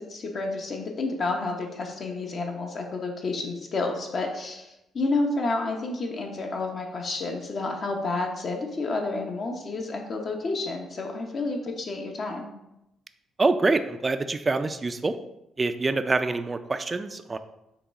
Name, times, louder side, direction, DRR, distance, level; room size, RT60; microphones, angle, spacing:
voice 1, 0.0-12.5, left 3 dB, 50° left, 2 dB, 0.8 m, -30 dB
voice 2, 13.4-15.1 15.6-17.4, right 3 dB, 25° right, 10 dB, 0.3 m, -25 dB
5.7 x 2.3 x 4.0 m, 0.87 s
cardioid pair, 90°, 0 cm